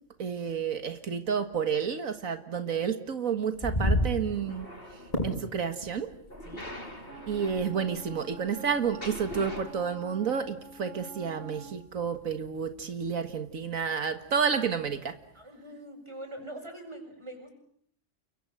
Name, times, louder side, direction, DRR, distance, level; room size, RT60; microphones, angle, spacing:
voice 1, 0.2-4.7 5.2-6.1 7.3-15.1, right 6 dB, 90° right, 9 dB, 2.1 m, -30 dB
sound 1, 3.4-15.4, left 1 dB, 25° left, 6.2 m, -37 dB
sound 2, 4.0-5.4 6.3-9.6, left 1 dB, 45° left, 5.0 m, -43 dB
voice 2, 6.4-6.7 15.3-17.5, right 1 dB, 20° right, 6 dB, 6.7 m, -43 dB
Wind instrument woodwind instrument, 7.0-11.8, right 4 dB, 40° right, 4.4 m, -48 dB
29.5 x 24.5 x 7.7 m, 0.65 s
omnidirectional pair, 1.4 m